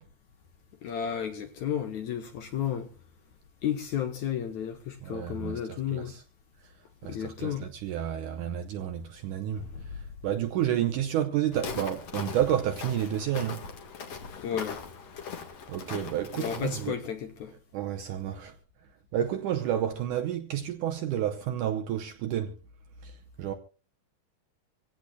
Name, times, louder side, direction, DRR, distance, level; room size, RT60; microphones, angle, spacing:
voice 1, 0.8-2.9 3.6-6.2 7.0-7.7 9.6-9.9 14.4-14.8 16.3-17.5, left 9 dB, 65° left, 1.9 m, -33 dB
voice 2, 5.0-6.2 7.0-9.6 10.2-13.6 15.7-17.0 17.7-18.6 19.1-22.5 23.0-23.1 23.4-23.5, right 10 dB, 75° right, 1.9 m, -30 dB
Walk footsteps, 11.5-16.9, left 6 dB, 50° left, 2.1 m, -40 dB
25.5 x 16.5 x 2.3 m
omnidirectional pair, 4.4 m